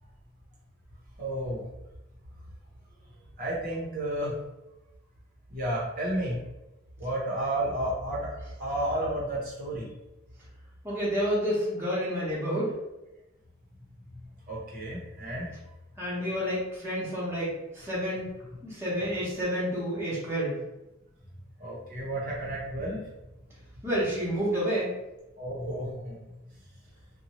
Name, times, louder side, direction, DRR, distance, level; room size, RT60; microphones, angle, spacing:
voice 1, 1.2-1.6 3.4-4.3 5.5-6.4 7.0-8.3 8.6-9.9 14.5-15.4 21.6-23.0 25.4-26.2, right 1 dB, 45° right, -6 dB, 0.8 m, -31 dB
voice 2, 10.8-12.7 16.0-18.2 18.6-20.6 23.8-24.9, equal, 10° right, -8 dB, 1.0 m, -29 dB
2.8 x 2.2 x 3.0 m, 0.97 s
head